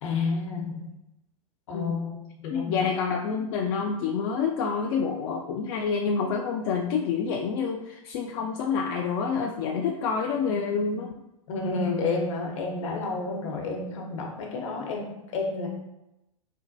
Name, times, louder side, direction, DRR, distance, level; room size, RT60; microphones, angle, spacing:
voice 1, 0.0-0.9 1.7-2.9 11.5-15.7, left 3 dB, 60° left, 1 dB, 0.8 m, -30 dB
voice 2, 2.5-11.1, left 5 dB, 45° left, 1 dB, 0.4 m, -28 dB
4.3 x 2.2 x 2.6 m, 0.90 s
hypercardioid pair, 110°, 19 cm